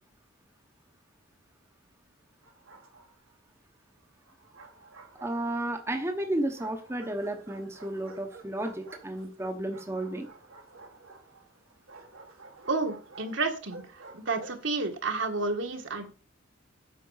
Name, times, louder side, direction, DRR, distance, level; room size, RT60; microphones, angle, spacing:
Bark, 2.4-3.3 4.2-5.8 6.6-14.7, right 3 dB, 85° right, 2.0 m, -51 dB
voice 1, 5.2-10.3, right 1 dB, 15° right, 4 dB, 1.0 m, -32 dB
voice 2, 12.7-16.1, right 3 dB, 65° right, 4 dB, 1.6 m, -31 dB
8.6 x 6.0 x 5.7 m, 0.38 s
head